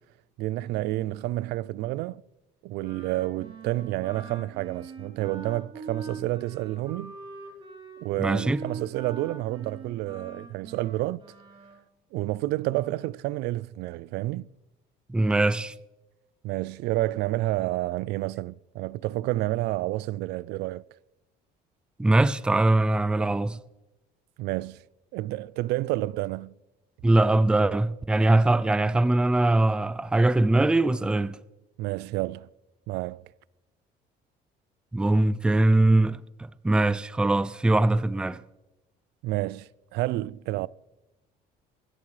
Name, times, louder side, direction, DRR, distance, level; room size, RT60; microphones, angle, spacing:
voice 1, 0.4-2.2 2.6-7.1 8.0-11.2 12.1-14.5 16.4-20.8 24.4-24.8 25.1-26.5 31.8-32.5 32.9-33.2 39.2-40.7, right 17 dB, 80° right, 0.4 m, -29 dB
Wind instrument woodwind instrument, 2.8-11.8, right 4 dB, 30° right, 3.2 m, -43 dB
voice 2, 8.2-8.6 15.1-15.7 22.0-23.6 27.0-31.4 34.9-38.4, right 2 dB, 5° right, 0.4 m, -22 dB
25.0 x 11.0 x 3.3 m
cardioid pair, 145°, 17 cm